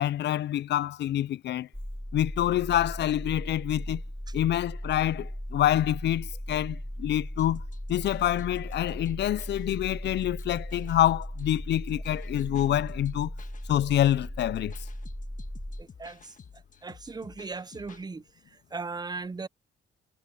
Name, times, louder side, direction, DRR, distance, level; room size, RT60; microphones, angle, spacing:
voice 1, 0.0-1.7 2.1-4.0 4.3-7.6 7.9-13.3 13.7-14.7, left 12 dB, 60° left, 0.5 m, -26 dB
sound 1, 1.7-15.8, equal, ahead, 3.1 m, -37 dB
sound 2, 7.4-18.0, left 6 dB, 40° left, 1.6 m, -52 dB
voice 2, 15.8-16.4 16.8-18.2 18.5-19.5, right 4 dB, 20° right, 0.6 m, -38 dB
cardioid pair, 90°, 20 cm